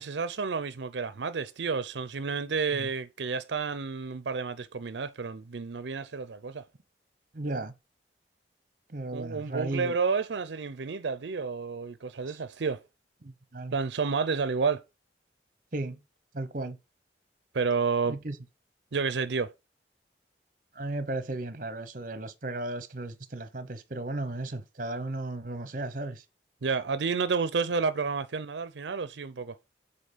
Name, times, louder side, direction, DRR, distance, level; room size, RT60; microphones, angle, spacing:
voice 1, 0.0-6.6 9.1-12.8 13.7-14.8 17.5-18.2 18.9-19.5 26.6-29.5, right 5 dB, 85° right, 0.6 m, -30 dB
voice 2, 7.3-7.7 8.9-9.9 13.2-13.7 15.7-16.0 16.3-16.8 18.1-18.4 20.8-26.2, right 2 dB, 50° right, 0.9 m, -35 dB
7.8 x 4.3 x 5.0 m
head